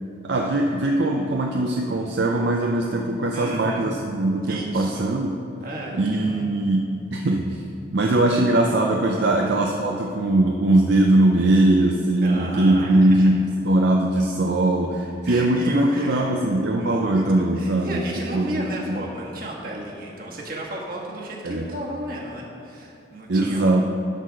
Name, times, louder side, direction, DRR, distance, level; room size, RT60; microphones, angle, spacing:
voice 1, 0.2-5.4 5.9-7.6 7.9-18.0 18.3-19.0 21.4-21.7 23.3-23.8, right 1 dB, 65° right, 1 dB, 0.5 m, -21 dB
voice 2, 3.3-3.9 4.4-5.1 5.6-6.7 9.1-9.3 12.2-13.3 15.2-16.2 16.8-23.8, right 1 dB, 50° right, -2 dB, 1.4 m, -33 dB
11.5 x 4.2 x 6.2 m, 2.7 s
head